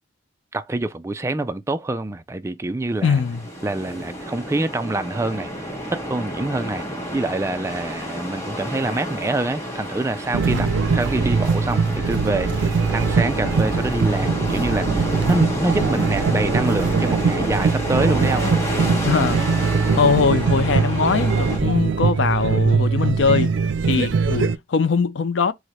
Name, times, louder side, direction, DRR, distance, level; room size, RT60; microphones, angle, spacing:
voice 1, 0.5-3.2 3.6-6.9 7.1-10.7 10.9-18.4 23.9-24.1, right 2 dB, 15° right, 0.3 m, -26 dB
voice 2, 3.0-3.4 10.5-10.7 18.4-18.5 19.0-19.4 19.9-23.6 23.9-25.5, left 5 dB, 75° left, 0.5 m, -21 dB
sound 1, 3.0-21.6, equal, 15° left, 1.1 m, -29 dB
sound 2, 10.3-24.6, right 5 dB, 85° right, 0.4 m, -22 dB
4.8 x 2.1 x 4.1 m
head